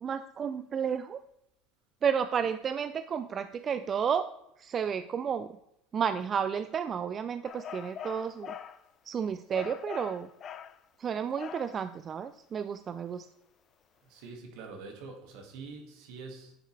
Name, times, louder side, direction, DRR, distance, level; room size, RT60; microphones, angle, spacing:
voice 1, 0.0-1.2 2.0-4.3 4.6-5.6 5.9-8.5 9.1-10.3 11.0-13.2, right 7 dB, 35° right, 11 dB, 0.4 m, -32 dB
sound 1, 7.4-8.8 9.5-10.8 11.4-11.8, left 8 dB, 45° left, 0.5 m, -42 dB
voice 2, 14.0-16.5, right 4 dB, 70° right, 3 dB, 2.0 m, -45 dB
9.6 x 5.5 x 3.3 m, 0.83 s
supercardioid pair, 95°, 0 cm